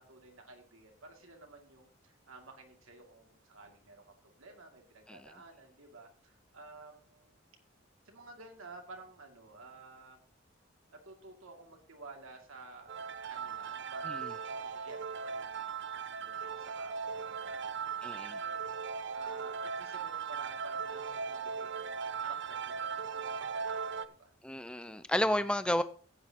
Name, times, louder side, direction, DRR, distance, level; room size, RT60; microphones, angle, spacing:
voice 1, 0.0-7.4 8.0-10.2 10.9-12.9 13.3-15.7 16.1-18.7 19.1-24.3, right 3 dB, 90° right, 3 dB, 2.4 m, -53 dB
sound 1, 12.9-24.0, right 6 dB, 60° right, 0.5 m, -38 dB
voice 2, 18.0-18.4 24.4-25.8, left 1 dB, 5° left, 12 dB, 0.5 m, -31 dB
15.0 x 8.9 x 2.9 m, 0.39 s
head